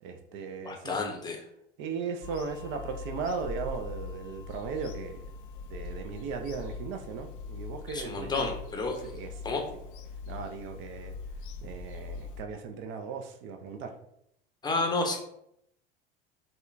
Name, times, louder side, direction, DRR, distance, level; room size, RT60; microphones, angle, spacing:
voice 1, 0.0-1.0 1.8-5.3 5.7-8.5 9.0-9.3 10.3-11.1 11.6-13.9, right 5 dB, 40° right, 5 dB, 0.5 m, -37 dB
voice 2, 0.6-1.4 7.9-9.0 9.4-9.6 14.6-15.2, left 3 dB, 15° left, 1 dB, 0.7 m, -30 dB
Bird vocalization bird call bird song / Telephone, 2.2-12.4, left 4 dB, 60° left, 0.4 m, -42 dB
5.3 x 2.2 x 2.5 m, 0.75 s
figure-of-eight pair, 75°, 30 cm